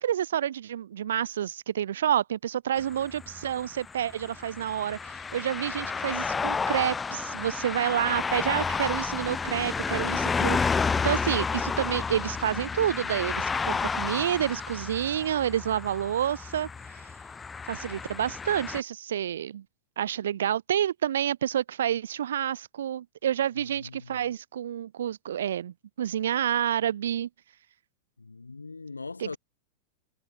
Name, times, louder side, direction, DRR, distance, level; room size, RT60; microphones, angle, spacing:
voice 1, 0.0-16.7 17.0-17.1 17.7-19.6 20.0-27.3 29.2-29.4, right 10 dB, 65° right, 1.0 m, -29 dB
sound 1, 2.8-18.8, left 5 dB, 15° left, 1.0 m, -31 dB
voice 2, 23.8-24.2 28.2-29.4, left 3 dB, 80° left, 1.0 m, -40 dB
figure-of-eight pair, 90°, 0 cm